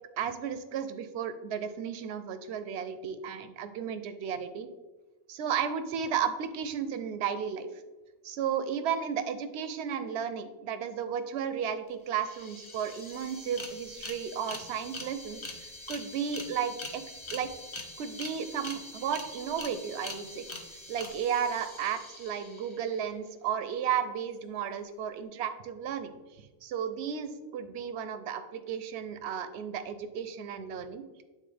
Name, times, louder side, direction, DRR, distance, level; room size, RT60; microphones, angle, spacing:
voice 1, 0.2-4.7 5.3-7.7 8.2-17.5 18.0-20.4 20.9-31.0, right 8 dB, 80° right, 10 dB, 0.9 m, -34 dB
sound 1, 11.9-12.0 12.1-23.0, left 2 dB, 30° left, 0.7 m, -44 dB
8.6 x 3.9 x 3.3 m, 1.2 s
omnidirectional pair, 1.1 m